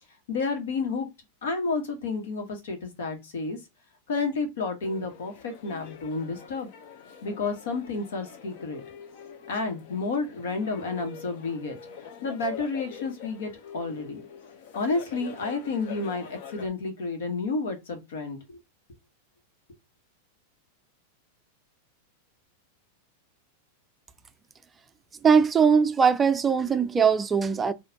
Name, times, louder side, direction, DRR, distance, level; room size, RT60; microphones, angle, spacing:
voice 1, 0.3-1.1 1.4-3.6 4.1-6.7 7.2-8.8 9.5-14.2 14.7-18.6, left 3 dB, 80° left, 1.4 m, -31 dB
sound 1, 4.8-16.7, left 7 dB, 60° left, 0.7 m, -44 dB
voice 2, 25.2-27.7, right 6 dB, 15° right, 0.3 m, -20 dB
4.2 x 2.6 x 2.8 m
supercardioid pair, 145°, 0 cm